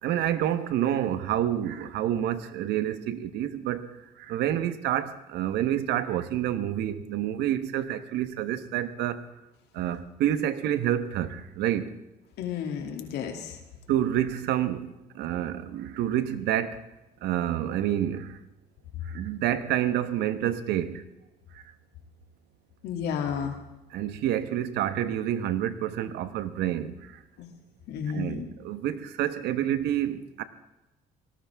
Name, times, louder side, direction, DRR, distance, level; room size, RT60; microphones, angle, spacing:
voice 1, 0.0-9.3 9.7-12.0 13.9-16.8 17.2-18.4 19.0-21.1 23.9-27.2 28.1-30.4, right 11 dB, 80° right, 1.3 m, -28 dB
voice 2, 12.4-13.6 22.8-23.6 27.4-27.5 27.9-28.5, left 7 dB, 80° left, 2.8 m, -32 dB
18.5 x 18.0 x 3.6 m
cardioid pair, 110°, 17 cm